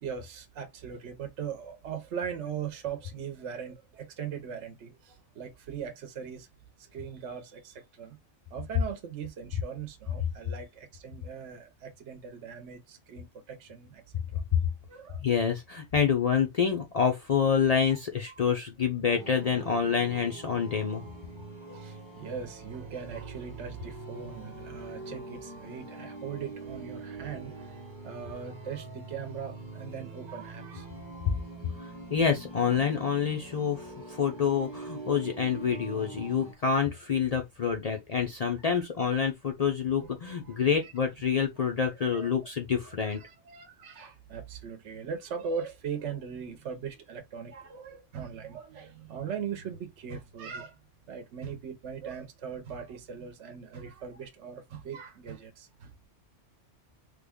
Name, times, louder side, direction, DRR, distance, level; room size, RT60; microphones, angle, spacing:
voice 1, 0.0-6.5 6.8-8.2 8.5-14.0 14.3-14.4 14.9-15.2 18.3-18.4 21.4-31.9 34.5-34.6 38.7-38.8 39.9-40.9 42.0-42.3 43.0-50.8 51.1-55.9, right 7 dB, 70° right, 1.0 m, -40 dB
voice 2, 15.2-21.0 31.3-31.4 31.8-43.2, left 7 dB, 55° left, 0.4 m, -27 dB
sound 1, 19.1-36.5, right 3 dB, 25° right, 0.9 m, -44 dB
3.2 x 2.2 x 3.5 m
omnidirectional pair, 1.3 m